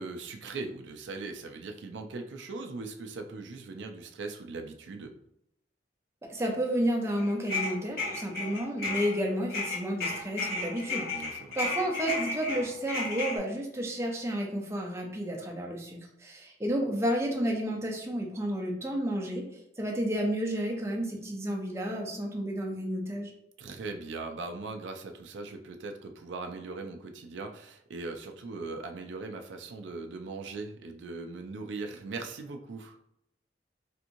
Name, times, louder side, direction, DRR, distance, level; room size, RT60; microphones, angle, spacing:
voice 1, 0.0-5.1 11.1-11.6 23.6-33.0, right 3 dB, 85° right, 5 dB, 0.4 m, -40 dB
voice 2, 6.3-11.1 11.5-19.4 19.8-23.3, equal, 15° right, 0 dB, 0.5 m, -31 dB
sound 1, 7.2-9.2 9.5-13.4, left 3 dB, 55° left, 1.0 m, -33 dB
3.5 x 2.9 x 2.6 m, 0.80 s
head